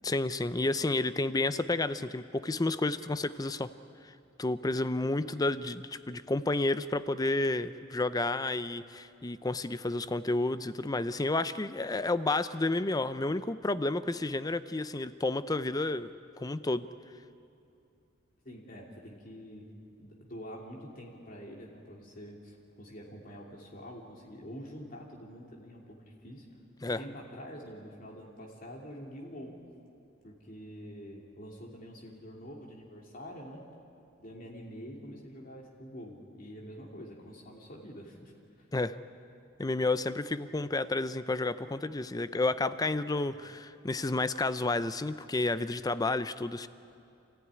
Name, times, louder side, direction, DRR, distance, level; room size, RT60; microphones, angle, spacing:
voice 1, 0.0-3.7 4.0-4.1 4.4-16.1 16.4-16.9 26.8-27.0 38.7-39.0 39.6-46.7, left 2 dB, 20° left, 13 dB, 0.5 m, -31 dB
voice 2, 18.4-19.7 20.0-26.5 26.8-29.5 30.2-33.6 34.2-38.3 38.6-38.7, equal, 45° left, -2 dB, 2.8 m, -46 dB
29.0 x 15.0 x 9.8 m, 2.6 s
head